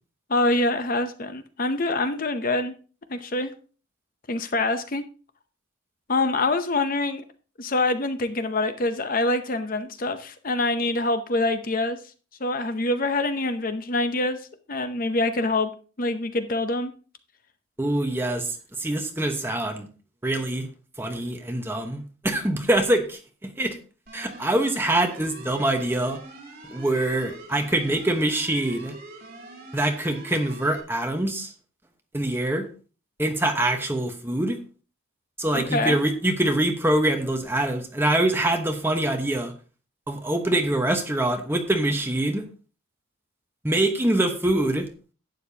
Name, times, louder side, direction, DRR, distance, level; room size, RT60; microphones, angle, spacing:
voice 1, 0.3-2.7 3.1-3.5 4.3-5.0 6.1-7.2 7.6-12.0 12.4-14.4 14.7-15.7 16.0-16.9 35.5-36.0, left 2 dB, 45° left, 9 dB, 0.7 m, -25 dB
voice 2, 17.8-19.9 20.2-20.7 21.0-23.7 24.1-26.2 26.7-29.0 29.7-31.5 32.1-32.7 33.2-34.6 35.4-39.5 40.1-42.4 43.6-44.9, right 1 dB, 10° right, 4 dB, 1.1 m, -24 dB
sound 1, 24.1-30.8, right 2 dB, 45° right, 2.7 m, -43 dB
11.5 x 8.8 x 2.9 m, 0.37 s
head